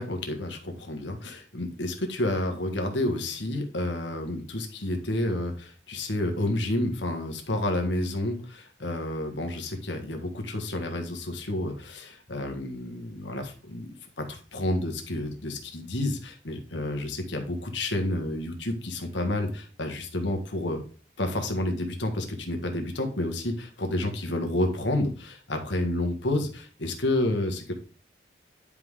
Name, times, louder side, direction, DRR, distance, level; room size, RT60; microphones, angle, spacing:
voice 1, 0.0-20.8 21.2-27.7, left 1 dB, 75° left, 5 dB, 1.6 m, -30 dB
10.5 x 4.9 x 3.7 m, 0.39 s
head